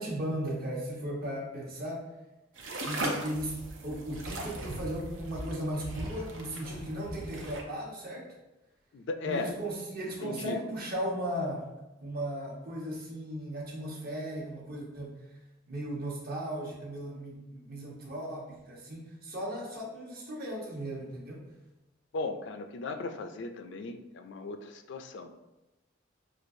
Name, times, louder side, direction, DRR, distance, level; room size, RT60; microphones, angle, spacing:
voice 1, 0.0-2.1 2.8-8.3 9.2-11.6 12.0-15.1 15.7-21.4, right 1 dB, 50° right, -3 dB, 1.0 m, -36 dB
sound 1, 2.6-7.6, right 1 dB, 70° right, 0.7 m, -38 dB
voice 2, 8.9-9.5 10.2-10.6 22.1-25.3, left 3 dB, 60° left, 7 dB, 0.4 m, -36 dB
6.1 x 2.4 x 2.6 m, 1.0 s
head